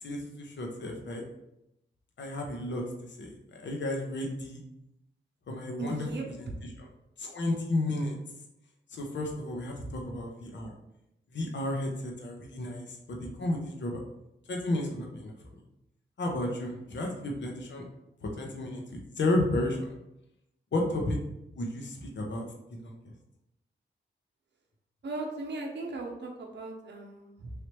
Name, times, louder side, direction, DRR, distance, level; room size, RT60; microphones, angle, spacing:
voice 1, 0.0-1.2 2.2-2.8 3.2-4.6 5.5-6.1 6.8-6.9 7.2-8.2 8.9-10.7 11.3-14.0 14.5-15.3 16.2-17.8 18.2-19.9 20.7-21.2 21.6-22.4 22.7-22.9, left 1 dB, 65° left, 1 dB, 0.8 m, -32 dB
voice 2, 5.8-6.3 9.8-10.0 25.0-27.5, right 3 dB, 60° right, 0 dB, 0.6 m, -38 dB
3.2 x 2.9 x 3.0 m, 0.84 s
cardioid pair, 45°, 20 cm